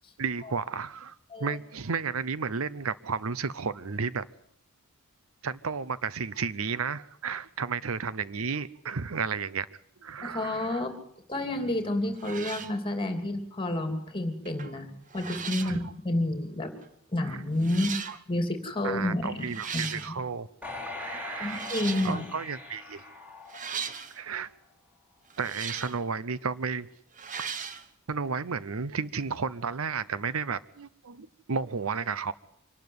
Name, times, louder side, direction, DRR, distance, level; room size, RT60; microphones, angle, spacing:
voice 1, 0.2-4.3 5.4-9.7 10.0-10.9 15.6-15.9 17.2-17.4 18.8-20.5 20.9-21.6 22.0-23.0 24.1-24.5 25.4-26.9 28.1-32.3, right 5 dB, 70° right, 0.7 m, -32 dB
voice 2, 10.2-10.9 11.3-16.7 17.1-17.9 18.3-20.2 21.4-22.3, left 1 dB, 25° left, 2.9 m, -30 dB
sound 1, 11.7-11.8 12.2-12.8 14.4-14.8 15.1-15.8 16.8-16.9 17.6-18.2 19.4-20.2 21.4-22.3 23.5-24.2 25.3-26.0 27.1-27.8, right 6 dB, 35° right, 1.1 m, -38 dB
sound 2, 20.6-24.1 24.5-24.6, left 3 dB, 5° right, 6.5 m, -41 dB
25.0 x 12.0 x 9.6 m
head